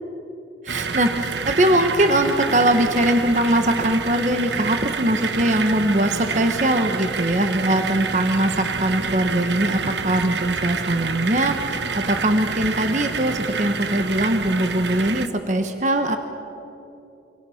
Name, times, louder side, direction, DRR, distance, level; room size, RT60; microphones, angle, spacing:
voice 1, 0.6-16.2, right 1 dB, 40° right, 6 dB, 1.2 m, -21 dB
sound 1, 0.7-15.3, right 5 dB, 80° right, 1.0 m, -28 dB
26.5 x 26.0 x 5.8 m, 2.9 s
head